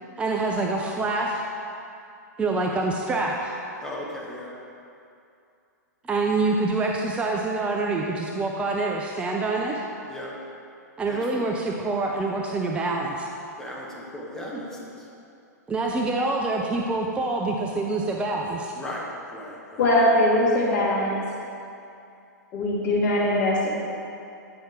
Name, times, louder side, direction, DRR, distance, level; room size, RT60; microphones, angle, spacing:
voice 1, 0.2-1.5 2.4-3.6 6.0-9.8 11.0-13.3 15.7-18.7, right 3 dB, 10° right, 0 dB, 0.5 m, -26 dB
voice 2, 3.8-4.5 10.1-10.3 11.1-11.2 13.6-14.9 18.8-19.6, left 1 dB, 5° left, -4 dB, 1.2 m, -36 dB
voice 3, 19.8-21.2 22.5-23.7, left 1 dB, 35° left, -8 dB, 1.9 m, -21 dB
9.5 x 5.4 x 3.6 m, 2.5 s
figure-of-eight pair, 110°, 10 cm